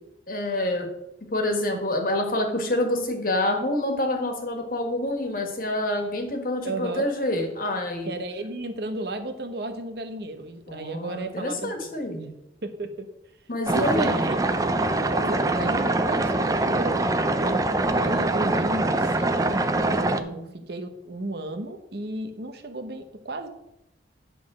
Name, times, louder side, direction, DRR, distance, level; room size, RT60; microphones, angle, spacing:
voice 1, 0.3-0.9 1.3-8.1 10.7-12.3 13.5-14.3 20.2-20.5, left 1 dB, 50° left, 3 dB, 1.6 m, -27 dB
voice 2, 6.6-7.1 8.1-11.9 12.6-13.1 13.7-14.4 15.1-23.5, right 2 dB, 60° right, 6 dB, 0.9 m, -34 dB
sound 1, 13.7-20.2, right 2 dB, 20° right, 0.4 m, -24 dB
10.0 x 3.9 x 6.1 m, 0.87 s
head